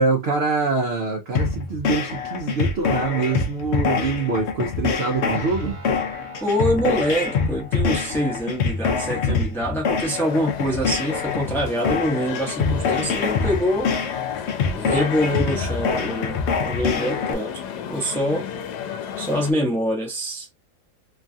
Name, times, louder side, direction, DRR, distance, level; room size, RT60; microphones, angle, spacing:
voice 1, 0.0-5.8 15.8-16.1, right 4 dB, 65° right, 0.6 m, -24 dB
sound 1, 1.3-17.3, left 5 dB, 70° left, 0.6 m, -25 dB
sound 2, 5.3-14.3, equal, 35° right, 1.1 m, -45 dB
voice 2, 6.4-13.9 14.7-17.5 17.9-18.5 19.2-20.5, equal, ahead, 0.5 m, -25 dB
sound 3, 10.1-19.5, left 8 dB, 90° left, 1.2 m, -33 dB
3.1 x 2.3 x 2.6 m
omnidirectional pair, 1.7 m